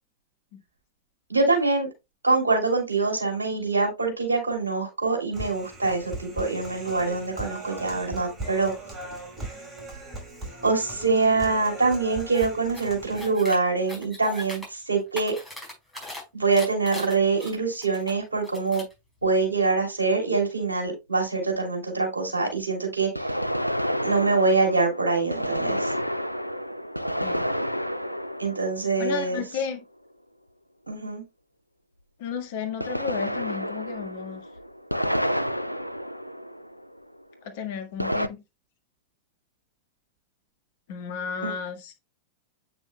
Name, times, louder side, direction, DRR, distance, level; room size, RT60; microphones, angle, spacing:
voice 1, 1.3-1.9 2.2-8.7 10.6-15.3 16.3-18.8 19.2-23.4 24.0-25.9 28.4-29.4 30.9-31.2 41.4-41.5, right 3 dB, 80° right, 3.0 m, -24 dB
Human voice, 5.3-13.3, right 2 dB, 20° right, 5.0 m, -38 dB
sound 1, 12.3-12.5 12.7-13.6 13.9-14.7 15.0-16.2 16.5-18.1 18.4-18.9, left 2 dB, 5° left, 5.0 m, -39 dB
sound 2, 19.2-19.3 23.2-29.7 32.8-37.0 38.0-38.3, equal, 90° left, 0.4 m, -30 dB
voice 2, 29.0-29.8 32.2-34.4 37.4-38.4 40.9-41.9, left 6 dB, 50° left, 1.6 m, -33 dB
8.7 x 6.1 x 2.2 m
figure-of-eight pair, 90°, 0 cm